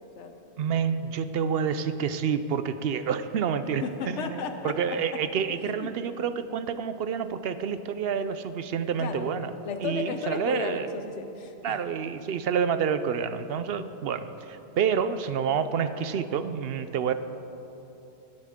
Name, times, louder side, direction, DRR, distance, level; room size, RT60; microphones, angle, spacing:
voice 1, 0.6-9.5 9.8-10.9 11.6-17.1, right 7 dB, 65° right, 11 dB, 0.7 m, -28 dB
voice 2, 3.8-5.2 5.8-5.9 9.0-11.8, left 5 dB, 90° left, 6 dB, 1.1 m, -34 dB
18.5 x 10.5 x 3.6 m, 3.0 s
omnidirectional pair, 1.2 m